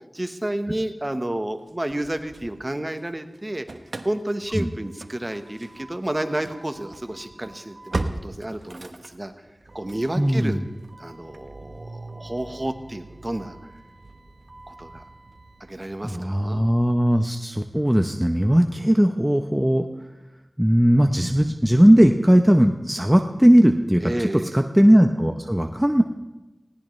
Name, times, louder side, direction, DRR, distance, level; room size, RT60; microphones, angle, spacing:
voice 1, 0.1-3.7 4.0-9.3 9.7-10.6 11.0-13.7 14.7-15.0 15.6-16.6 24.0-24.6, right 1 dB, 25° right, 7 dB, 1.2 m, -30 dB
Engine starting / Slam, 1.7-3.1 3.3-16.4, right 2 dB, 70° right, 1.0 m, -39 dB
voice 2, 10.2-10.6 16.0-19.9 20.6-26.0, equal, 10° right, 5 dB, 0.8 m, -18 dB
19.5 x 17.5 x 3.3 m, 1.0 s
wide cardioid pair, 50°, 0 cm